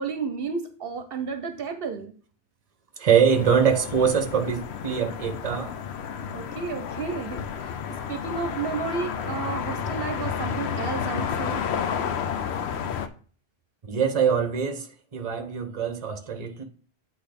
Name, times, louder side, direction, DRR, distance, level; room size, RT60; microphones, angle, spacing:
voice 1, 0.0-2.1 6.3-7.8 8.1-11.6, right 5 dB, 65° right, 0.9 m, -32 dB
voice 2, 3.0-5.7 13.8-16.6, right 7 dB, 40° right, 0.9 m, -23 dB
sound 1, 3.3-13.1, left 7 dB, 85° left, 0.9 m, -31 dB
8.3 x 3.0 x 5.1 m
omnidirectional pair, 1.1 m